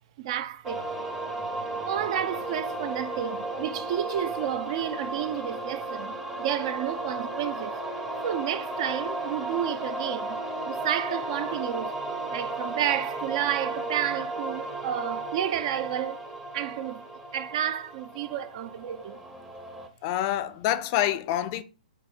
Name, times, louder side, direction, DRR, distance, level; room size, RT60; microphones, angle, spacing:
voice 1, 0.2-0.8 1.9-7.8 8.2-10.4 10.7-11.9 12.3-16.2 16.5-17.0 17.3-19.2, right 10 dB, 45° right, 0.4 m, -31 dB
sound 1, 0.6-19.9, right 2 dB, 10° right, 0.6 m, -34 dB
voice 2, 20.0-21.6, left 12 dB, 35° left, 0.4 m, -26 dB
5.8 x 2.1 x 4.2 m
figure-of-eight pair, 115°, 5 cm